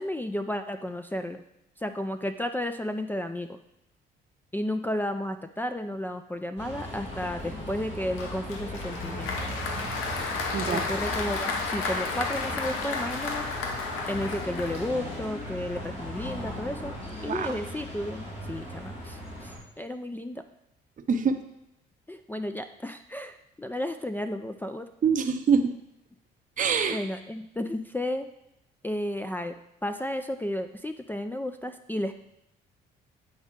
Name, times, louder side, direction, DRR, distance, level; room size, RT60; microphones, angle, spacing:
voice 1, 0.0-1.4 1.8-3.6 4.5-9.5 10.7-13.5 14.1-16.9 17.2-20.4 22.1-24.9 26.9-28.3 28.8-32.1, left 1 dB, 10° left, 5 dB, 0.4 m, -33 dB
Bus, 6.6-19.6, left 1 dB, 55° left, 2.3 m, -38 dB
Applause, 8.2-15.3, left 4 dB, 80° left, 0.8 m, -33 dB
voice 2, 10.5-10.9 17.3-17.6 21.0-21.3 25.0-25.7 26.6-27.0, right 6 dB, 40° right, 5 dB, 0.7 m, -25 dB
8.7 x 4.1 x 3.7 m, 0.81 s
supercardioid pair, 70°, 21 cm